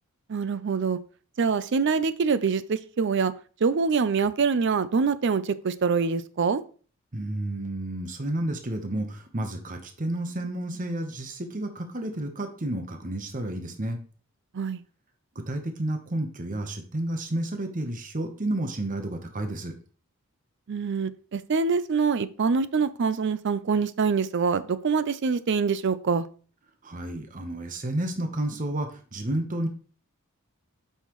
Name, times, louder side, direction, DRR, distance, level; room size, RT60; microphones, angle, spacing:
voice 1, 0.3-1.0 1.4-3.3 3.6-6.6 14.5-14.8 20.7-26.3, right 5 dB, 55° right, 14 dB, 0.5 m, -25 dB
voice 2, 7.1-14.0 15.4-19.7 26.8-29.7, right 1 dB, 35° right, 5 dB, 0.9 m, -31 dB
8.0 x 5.7 x 3.0 m, 0.41 s
head